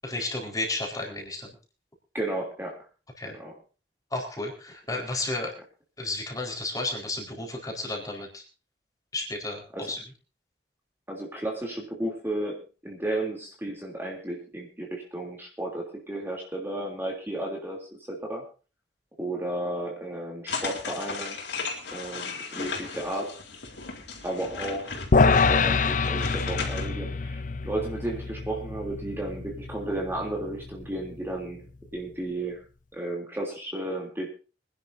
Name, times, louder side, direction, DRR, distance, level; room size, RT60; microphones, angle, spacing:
voice 1, 0.0-1.5 3.2-3.3 4.1-5.5 6.0-8.4 9.1-10.0, left 2 dB, 20° left, 0 dB, 4.5 m, -32 dB
voice 2, 2.1-2.8 3.3-3.6 9.7-9.9 11.1-18.5 19.2-21.4 21.9-23.4 24.2-32.6 32.9-34.3, right 1 dB, 15° right, 0 dB, 3.1 m, -33 dB
sound 1, 20.5-26.9, left 4 dB, 80° left, 3.9 m, -36 dB
sound 2, 25.1-31.5, left 4 dB, 50° left, 0.7 m, -26 dB
25.5 x 11.0 x 2.7 m, 0.34 s
head